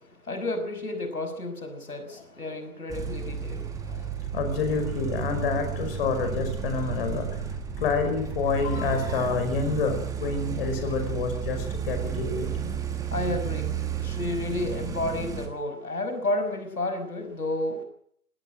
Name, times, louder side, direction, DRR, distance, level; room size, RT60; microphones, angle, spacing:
voice 1, 0.2-3.7 13.1-17.8, left 2 dB, 85° left, 8 dB, 5.4 m, -31 dB
sound 1, 2.9-15.5, right 7 dB, 10° right, 1.6 m, -32 dB
voice 2, 3.9-7.4 7.8-12.7, left 4 dB, 40° left, 6 dB, 5.2 m, -28 dB
21.0 x 17.0 x 7.5 m, 0.64 s
figure-of-eight pair, 135°, 44 cm